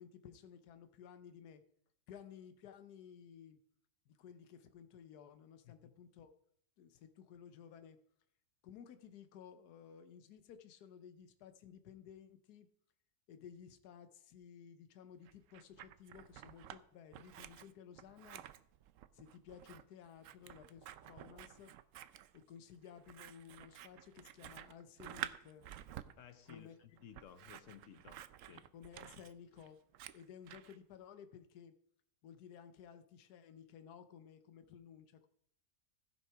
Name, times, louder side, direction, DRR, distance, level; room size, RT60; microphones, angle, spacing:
voice 1, 0.0-1.6 2.1-3.6 4.1-6.3 6.8-8.0 8.6-12.7 13.3-18.4 19.1-21.7 22.3-25.7 26.4-26.8 28.7-29.8 30.1-31.8 32.2-35.3, left 8 dB, 80° left, 1.3 m, -56 dB
Scissors, 15.3-16.8 17.1-30.8, right 12 dB, 65° right, 0.8 m, -51 dB
voice 2, 26.2-28.7, left 9 dB, 60° left, 1.1 m, -57 dB
15.5 x 6.2 x 4.6 m
omnidirectional pair, 1.7 m